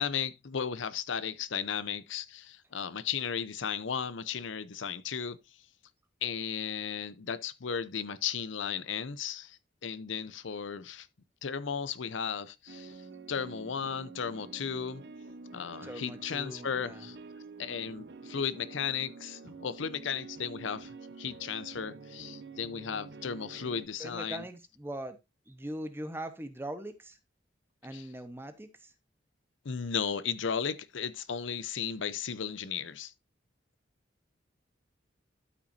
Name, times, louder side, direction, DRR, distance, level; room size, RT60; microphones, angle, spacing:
voice 1, 0.0-5.4 6.2-11.1 11.4-13.0 13.3-15.0 15.5-17.2 17.6-24.4 27.9-28.0 29.6-33.1, left 7 dB, 85° left, 0.7 m, -35 dB
sound 1, 12.7-23.9, right 4 dB, 60° right, 0.8 m, -48 dB
voice 2, 15.8-17.1 24.0-25.2 25.5-27.2 27.8-28.9, right 1 dB, 10° right, 0.9 m, -41 dB
12.5 x 5.8 x 2.6 m
head